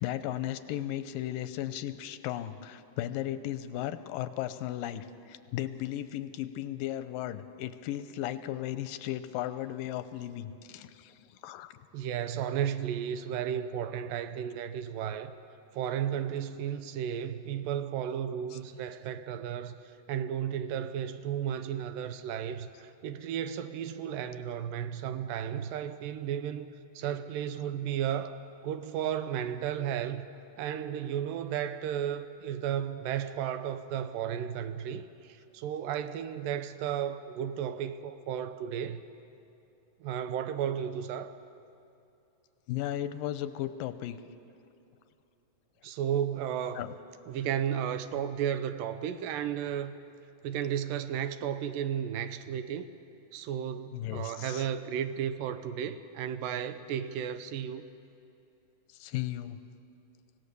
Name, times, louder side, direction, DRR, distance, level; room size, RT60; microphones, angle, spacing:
voice 1, 0.0-11.8 42.7-44.2 46.8-47.0 53.9-54.7 58.9-59.6, left 12 dB, 90° left, 2.4 m, -36 dB
voice 2, 11.9-15.3 15.7-28.4 28.6-30.2 30.6-39.0 40.0-41.3 45.8-46.8 47.3-49.9 50.4-52.9 53.3-57.9, right 9 dB, 90° right, 2.5 m, -34 dB
25.0 x 17.0 x 6.9 m
omnidirectional pair, 3.9 m